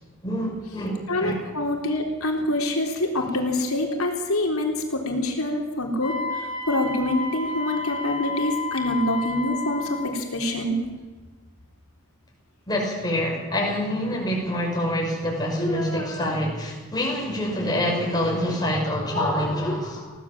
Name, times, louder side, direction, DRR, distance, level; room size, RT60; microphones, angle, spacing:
voice 1, 0.2-1.4 12.7-20.1, left 1 dB, 20° left, -1 dB, 5.8 m, -26 dB
voice 2, 1.1-10.8, left 1 dB, 85° left, 1 dB, 3.6 m, -26 dB
Wind instrument woodwind instrument, 6.0-10.1, left 3 dB, 35° left, 8.0 m, -31 dB
21.0 x 16.5 x 7.4 m, 1.3 s
head